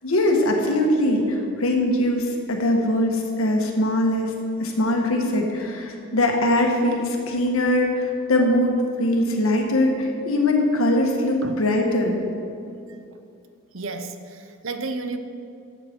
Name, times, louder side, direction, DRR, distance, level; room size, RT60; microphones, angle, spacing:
voice 1, 0.0-4.3 4.6-12.2, left 1 dB, 75° left, 2 dB, 1.4 m, -21 dB
voice 2, 12.9-13.2 13.7-15.2, right 3 dB, 65° right, 8 dB, 0.7 m, -32 dB
12.0 x 7.9 x 4.5 m, 2.5 s
head